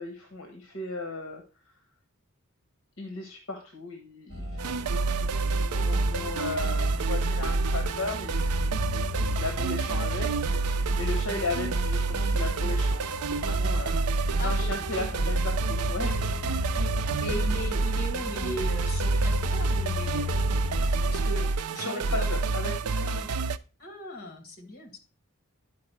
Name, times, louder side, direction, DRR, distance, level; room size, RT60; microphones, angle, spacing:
voice 1, 0.0-1.4 3.0-4.7 5.2-8.3 9.2-16.3 21.8-23.1, left 2 dB, 60° left, 4 dB, 1.2 m, -36 dB
sound 1, 4.3-21.3, left 2 dB, 65° right, 1.5 m, -35 dB
sound 2, 4.6-23.6, right 3 dB, 85° right, 0.4 m, -28 dB
voice 2, 14.4-14.8 17.2-20.6 21.1-22.3 22.9-23.3 23.8-24.9, left 1 dB, 45° left, 4 dB, 2.0 m, -38 dB
10.5 x 4.7 x 4.5 m, 0.34 s
head